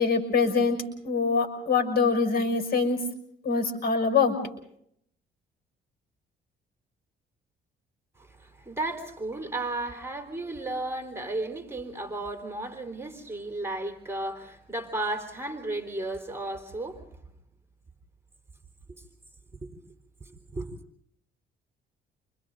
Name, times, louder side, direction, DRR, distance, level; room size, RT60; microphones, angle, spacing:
voice 1, 0.0-3.0 3.4-4.4, left 4 dB, 50° left, 6.1 m, -24 dB
voice 2, 8.2-17.0 18.9-19.0 19.6-19.7 20.2-20.7, right 2 dB, 10° right, 3.9 m, -34 dB
29.5 x 25.5 x 3.9 m
cardioid pair, 90°, 20 cm